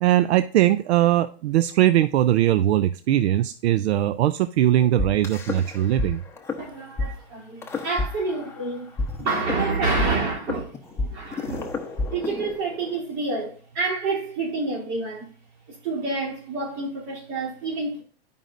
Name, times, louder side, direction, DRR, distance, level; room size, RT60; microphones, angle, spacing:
voice 1, 0.0-6.2, right 13 dB, 80° right, 0.5 m, -20 dB
sound 1, 5.0-6.1 6.4-6.6 7.0-7.1 7.6-8.6 9.0-13.0, left 3 dB, 10° left, 0.9 m, -29 dB
voice 2, 6.6-8.9 9.2-11.8 12.1-15.3 15.7-18.0, right 3 dB, 45° right, 3.1 m, -28 dB
11.0 x 5.2 x 2.5 m
hypercardioid pair, 135°, 32 cm